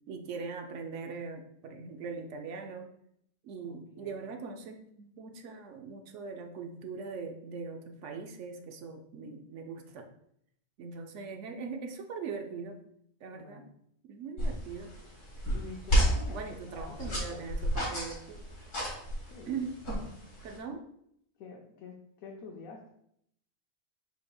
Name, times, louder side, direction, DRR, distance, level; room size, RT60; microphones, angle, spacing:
voice 1, 0.1-2.9 3.4-10.1 10.8-12.8 13.2-13.6 14.1-14.9 16.3-18.5 19.5-20.2 20.4-20.9, right 5 dB, 65° right, 4 dB, 0.9 m, -41 dB
voice 2, 3.6-4.2 13.3-13.8 15.5-17.4 19.3-19.6 21.4-22.9, left 3 dB, 90° left, -1 dB, 1.2 m, -48 dB
sound 1, 14.4-20.6, equal, 65° left, 2.3 m, -32 dB
5.0 x 4.7 x 2.3 m, 0.71 s
omnidirectional pair, 1.4 m